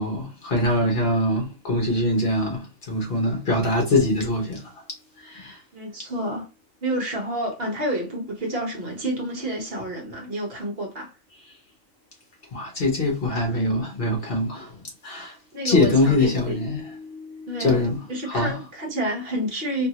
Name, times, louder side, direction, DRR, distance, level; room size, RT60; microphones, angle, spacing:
voice 1, 0.0-4.7 5.2-5.6 12.5-14.7 15.0-15.4 15.6-18.5, left 1 dB, 50° left, 0.9 m, -23 dB
voice 2, 5.7-6.5 6.8-11.1 15.5-16.6 17.5-19.9, right 1 dB, 50° right, 1.0 m, -29 dB
2.7 x 2.6 x 2.8 m
omnidirectional pair, 1.4 m